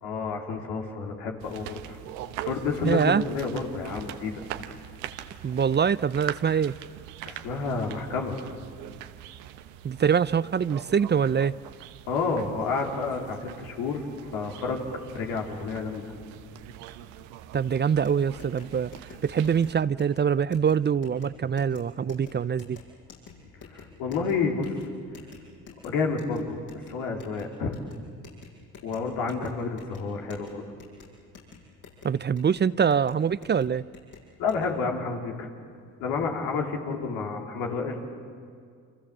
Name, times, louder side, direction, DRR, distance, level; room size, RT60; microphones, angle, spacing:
voice 1, 0.0-2.0 2.5-4.4 7.3-8.4 12.1-14.0 14.3-14.8 15.1-16.1 23.7-24.7 25.8-26.6 26.9-27.8 28.8-30.6 34.4-35.5 36.0-38.0, left 4 dB, 85° left, 1 dB, 3.5 m, -30 dB
sound 1, 1.4-19.8, right 11 dB, 90° right, 1.0 m, -42 dB
voice 2, 2.8-3.2 5.4-6.7 9.8-11.5 17.5-18.9 19.2-22.8 32.0-33.8, right 7 dB, 30° right, 18 dB, 0.6 m, -24 dB
sound 2, 17.9-34.6, left 5 dB, 65° left, 7.9 m, -50 dB
29.0 x 26.5 x 7.4 m, 2.2 s
supercardioid pair, 65°, 34 cm